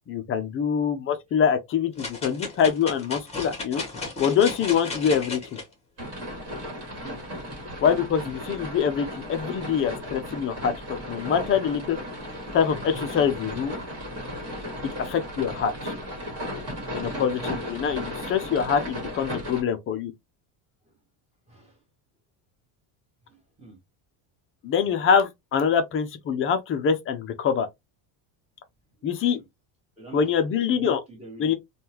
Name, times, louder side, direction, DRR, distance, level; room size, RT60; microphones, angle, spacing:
voice 1, 0.1-3.8 4.2-5.4 7.8-12.0 12.5-13.7 14.8-15.9 17.0-20.1 24.6-27.7 29.0-29.4 30.1-31.0 31.4-31.5, left 7 dB, 30° left, 0.4 m, -24 dB
sound 1, 2.0-5.6 6.2-6.3, left 3 dB, 15° left, 1.1 m, -34 dB
sound 2, 6.0-19.6, equal, 30° right, 1.6 m, -35 dB
voice 2, 21.5-21.8 23.3-23.8 29.3-29.5 30.0-30.4 30.7-31.6, right 3 dB, 15° right, 1.4 m, -45 dB
3.6 x 2.3 x 2.8 m
cardioid pair, 160°, 49 cm